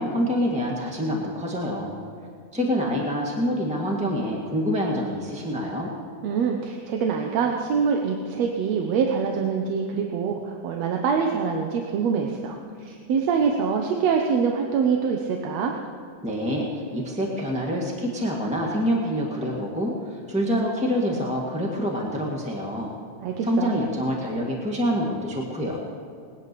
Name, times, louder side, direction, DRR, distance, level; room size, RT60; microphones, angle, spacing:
voice 1, 0.0-2.0 2.5-5.9 16.2-22.9 23.4-25.8, equal, 5° right, -2 dB, 1.0 m, -26 dB
voice 2, 6.2-15.7 23.2-23.8, right 6 dB, 70° right, 2 dB, 2.1 m, -25 dB
20.0 x 10.0 x 6.8 m, 2.5 s
omnidirectional pair, 3.4 m